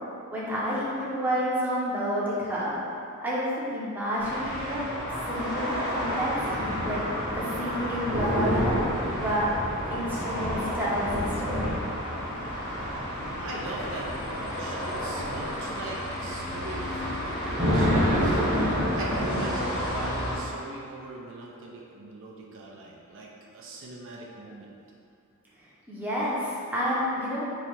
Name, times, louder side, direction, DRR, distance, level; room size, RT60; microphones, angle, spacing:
voice 1, 0.3-2.7 3.2-4.8 5.3-6.3 6.8-7.0 7.4-8.8 9.2-9.5 9.8-11.8 25.9-27.5, equal, 10° right, -8 dB, 0.6 m, -29 dB
sound 1, 4.2-20.4, equal, 75° left, 1.1 m, -33 dB
sound 2, 6.0-19.4, equal, 40° right, 1.0 m, -30 dB
voice 2, 13.4-18.4 18.9-24.7, right 2 dB, 60° right, -2 dB, 0.4 m, -41 dB
3.1 x 2.7 x 4.3 m, 2.6 s
head